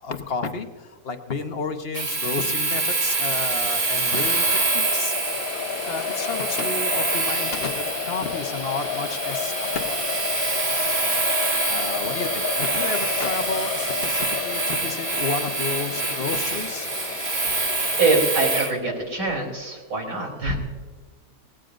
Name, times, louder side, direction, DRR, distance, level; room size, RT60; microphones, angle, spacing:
voice 1, 0.0-5.1 5.8-10.2 11.6-16.9, left 4 dB, 40° left, 6 dB, 1.0 m, -31 dB
Domestic sounds home sounds, 1.9-18.8, right 3 dB, 40° right, 1.8 m, -26 dB
sound 1, 3.6-18.2, left 7 dB, 80° left, 1.5 m, -32 dB
voice 2, 17.7-20.6, right 3 dB, 55° right, 0 dB, 4.0 m, -24 dB
19.5 x 16.5 x 2.6 m, 1.5 s
omnidirectional pair, 2.2 m